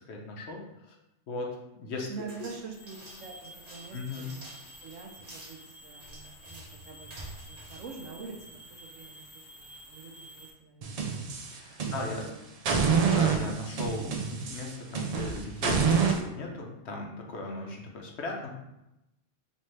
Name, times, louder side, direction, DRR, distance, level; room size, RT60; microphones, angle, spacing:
voice 1, 0.1-1.0 1.3-2.1 3.9-4.3 11.5-12.3 13.1-18.5, left 2 dB, 65° left, 0 dB, 1.0 m, -37 dB
voice 2, 2.1-4.4 4.8-11.1 11.7-12.4, right 5 dB, 90° right, 1 dB, 1.1 m, -46 dB
sound 1, 2.2-8.7, right 1 dB, 35° right, 0.8 m, -49 dB
sound 2, 2.6-10.5, equal, 45° left, 1.2 m, -51 dB
sound 3, 10.8-12.2 12.6-16.2, right 6 dB, 65° right, 0.3 m, -27 dB
4.3 x 3.1 x 3.2 m, 0.90 s
omnidirectional pair, 1.3 m